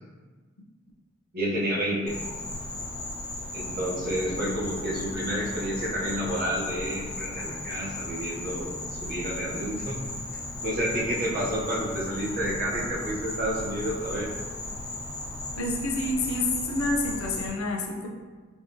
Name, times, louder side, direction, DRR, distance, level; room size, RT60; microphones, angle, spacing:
voice 1, 1.3-2.2 3.5-10.0 10.6-14.3, equal, 45° right, -5 dB, 0.8 m, -30 dB
Insect, 2.1-17.5, left 2 dB, 20° left, 0.5 m, -36 dB
voice 2, 15.6-18.1, left 2 dB, 80° left, 0 dB, 0.5 m, -28 dB
3.5 x 2.9 x 2.7 m, 1.4 s
head